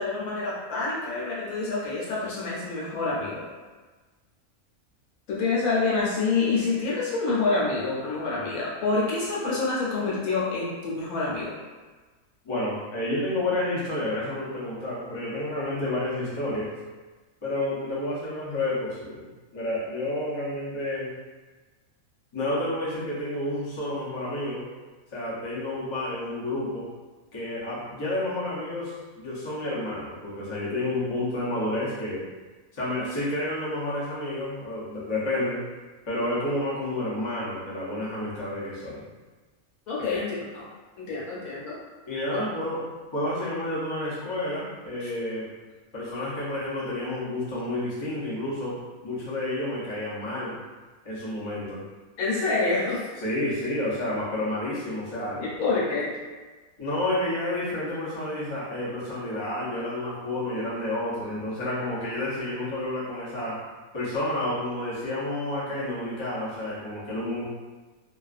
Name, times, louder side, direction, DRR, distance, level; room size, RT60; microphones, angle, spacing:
voice 1, 0.0-3.4 5.3-11.5 39.9-40.6 41.0-41.8 42.3-42.4 52.2-53.1 55.6-56.1, left 3 dB, 75° left, -6 dB, 1.1 m, -27 dB
voice 2, 12.4-16.7 17.4-21.1 22.3-24.6 25.1-26.9 27.3-32.2 32.7-35.6 36.1-39.0 40.1-40.2 42.1-42.8 43.1-45.5 45.9-48.8 49.0-50.6 51.0-51.8 53.2-55.4 56.8-63.6 63.9-67.4, left 1 dB, 35° left, -8 dB, 0.4 m, -30 dB
2.3 x 2.3 x 2.4 m, 1.3 s
omnidirectional pair, 1.5 m